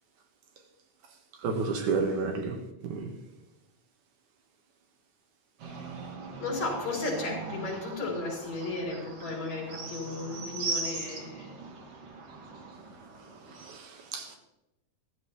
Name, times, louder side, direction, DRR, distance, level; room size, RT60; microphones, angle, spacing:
voice 1, 1.4-2.6 2.8-3.1 13.7-14.4, right 4 dB, 80° right, 3.1 m, -30 dB
sound 1, 5.6-13.8, right 3 dB, 55° right, 2.7 m, -40 dB
voice 2, 6.4-11.5, left 3 dB, 65° left, 5.0 m, -34 dB
14.5 x 14.0 x 3.2 m
omnidirectional pair, 3.5 m